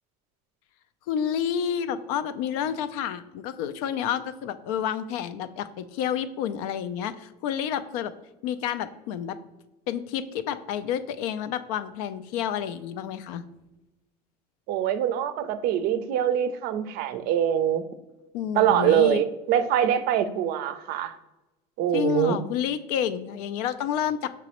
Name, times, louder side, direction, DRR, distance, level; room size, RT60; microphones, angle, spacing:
voice 1, 1.1-8.1 8.4-9.4 9.9-13.4 18.3-19.2 21.9-24.3, left 9 dB, 80° left, 13 dB, 0.4 m, -29 dB
voice 2, 14.7-17.8 18.6-21.2 21.8-22.4, right 10 dB, 55° right, 12 dB, 0.4 m, -24 dB
5.9 x 3.0 x 2.9 m, 1.1 s
cardioid pair, 130°, 19 cm